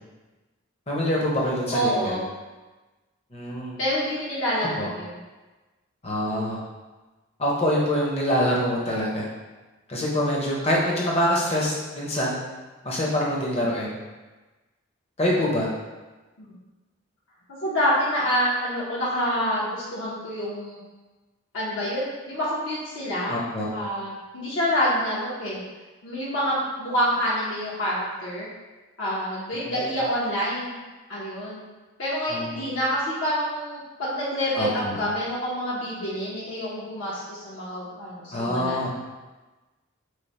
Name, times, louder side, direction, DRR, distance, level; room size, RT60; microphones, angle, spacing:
voice 1, 0.9-2.2 3.3-3.8 4.8-4.9 6.0-6.6 7.4-9.3 9.9-12.4 12.8-13.9 15.2-15.7 23.3-23.7 29.5-29.7 32.3-32.6 34.5-35.0 38.3-38.9, equal, 30° left, -4 dB, 0.6 m, -25 dB
voice 2, 1.7-2.2 3.8-5.1 16.4-16.5 17.6-20.8 21.5-23.4 23.7-25.6 26.0-28.5 29.0-30.8 31.1-31.6 32.0-38.9, equal, 70° left, -8 dB, 0.7 m, -27 dB
3.2 x 2.1 x 4.0 m, 1.2 s
head